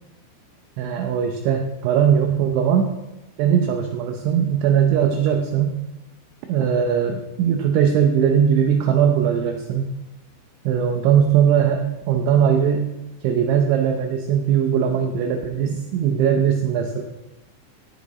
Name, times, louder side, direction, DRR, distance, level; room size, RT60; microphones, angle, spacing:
voice 1, 0.8-2.9 3.4-5.8 6.5-9.9 10.7-12.9 13.2-17.0, right 8 dB, 80° right, 4 dB, 2.9 m, -20 dB
16.0 x 6.5 x 4.1 m, 0.97 s
omnidirectional pair, 5.9 m